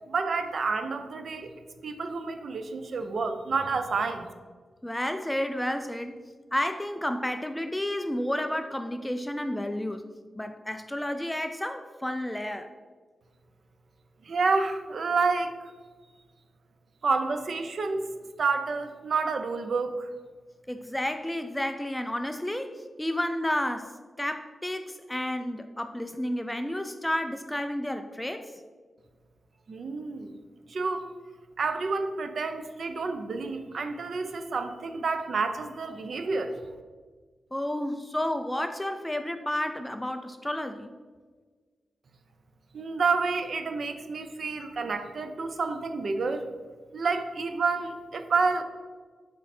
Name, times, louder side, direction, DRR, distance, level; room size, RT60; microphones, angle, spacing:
voice 1, 0.1-1.5 1.8-4.3 14.2-15.5 17.0-18.0 18.4-20.1 29.7-30.4 30.7-31.1 31.6-36.5 42.7-46.4 46.9-48.6, right 4 dB, 55° right, 8 dB, 0.6 m, -29 dB
voice 2, 4.8-6.2 6.5-10.0 10.4-12.7 20.7-28.5 37.5-40.9, left 1 dB, 5° left, 8 dB, 0.3 m, -31 dB
7.3 x 4.7 x 4.3 m, 1.5 s
wide cardioid pair, 155°, 0 cm